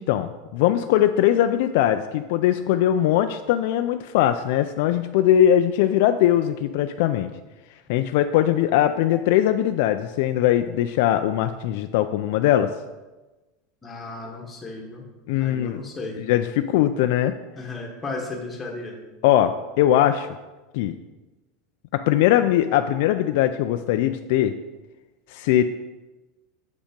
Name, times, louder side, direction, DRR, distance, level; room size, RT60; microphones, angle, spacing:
voice 1, 0.0-7.3 7.9-12.7 15.3-15.8 16.3-17.3 19.2-20.3 20.7-20.9 21.9-24.5 25.3-25.6, left 11 dB, 55° left, 8 dB, 0.3 m, -20 dB
voice 2, 13.8-15.1 15.4-16.2 17.5-19.0, left 3 dB, 10° left, 0 dB, 1.2 m, -34 dB
7.1 x 5.2 x 5.1 m, 1.1 s
supercardioid pair, 170°, 0 cm